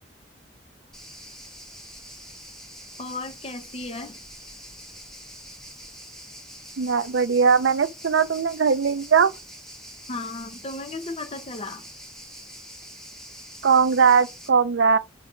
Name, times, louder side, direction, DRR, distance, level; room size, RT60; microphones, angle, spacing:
sound 1, 0.9-14.5, equal, 5° left, 1.5 m, -45 dB
voice 1, 3.0-4.2 10.1-11.9, left 2 dB, 35° left, 0.8 m, -35 dB
voice 2, 6.8-9.3 13.6-15.0, right 6 dB, 80° right, 0.5 m, -20 dB
5.9 x 4.0 x 5.1 m
head